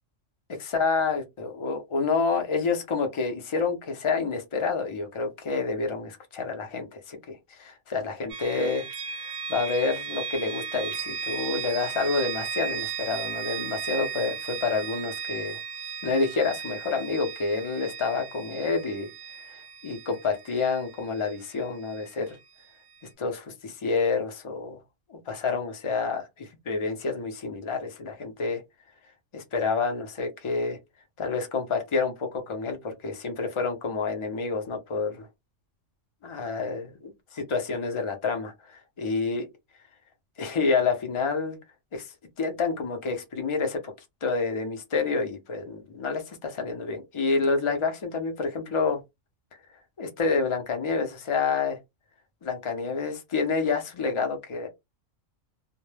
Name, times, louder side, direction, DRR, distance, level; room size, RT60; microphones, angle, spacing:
voice 1, 0.6-8.9 9.5-15.6 16.0-19.1 19.4-22.4 23.2-24.8 25.1-28.6 29.3-30.8 31.2-35.3 36.2-39.5 40.4-41.6 41.9-42.1 42.4-43.9 44.2-49.0 50.0-51.8 52.4-54.7, left 4 dB, 45° left, 0.4 m, -28 dB
sound 1, 8.3-22.1, right 6 dB, 55° right, 0.7 m, -36 dB
2.1 x 2.1 x 3.2 m
omnidirectional pair, 1.3 m